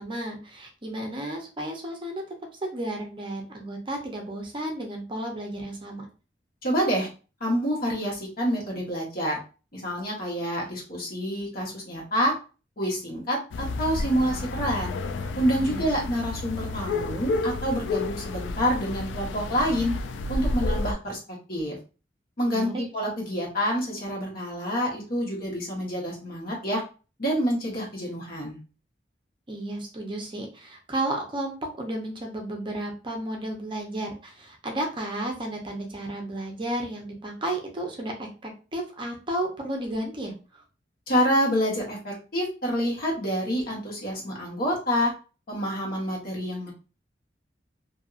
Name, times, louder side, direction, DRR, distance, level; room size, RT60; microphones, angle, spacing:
voice 1, 0.0-2.2 2.6-6.0 15.6-16.1 22.5-22.8 29.5-40.6, right 1 dB, 30° right, 1 dB, 0.6 m, -33 dB
voice 2, 6.6-7.1 7.4-9.4 9.7-12.3 12.8-15.0 15.4-19.9 20.3-21.2 21.5-21.8 22.4-26.8 27.2-28.6 41.1-45.1 45.5-46.7, equal, 55° left, -3 dB, 1.3 m, -27 dB
sound 1, 13.5-20.9, left 3 dB, 85° left, 0.3 m, -30 dB
2.8 x 2.6 x 2.4 m, 0.34 s
head